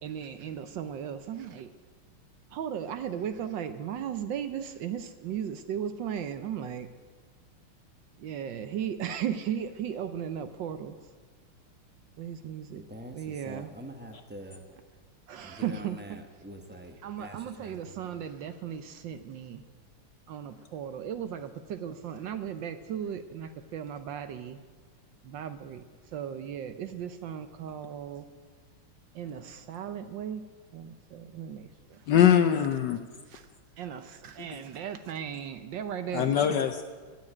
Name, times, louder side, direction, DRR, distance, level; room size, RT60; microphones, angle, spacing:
voice 1, 0.0-1.7 2.5-6.9 8.2-11.0 12.2-12.8 13.1-13.7 15.3-16.2 17.0-19.6 20.3-24.6 25.2-25.8 26.1-28.3 29.1-30.4 30.7-32.0 33.3-33.4 33.8-36.6, right 9 dB, 65° right, 10 dB, 1.3 m, -36 dB
voice 2, 12.7-13.2 13.4-14.6 15.4-18.2, right 1 dB, 10° right, 5 dB, 0.5 m, -45 dB
voice 3, 32.1-33.0 34.5-34.6 36.1-36.8, left 9 dB, 70° left, 9 dB, 1.1 m, -22 dB
17.0 x 7.3 x 9.9 m, 1.5 s
omnidirectional pair, 2.4 m